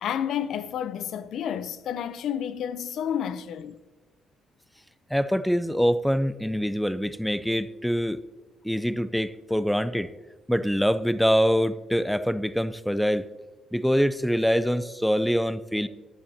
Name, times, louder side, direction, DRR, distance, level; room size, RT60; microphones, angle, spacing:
voice 1, 0.0-3.8, left 9 dB, 75° left, 0.6 m, -30 dB
voice 2, 5.1-8.2 8.6-10.1 10.5-13.3 13.7-15.9, equal, ahead, 0.5 m, -24 dB
15.5 x 11.0 x 2.8 m
cardioid pair, 90°, 0 cm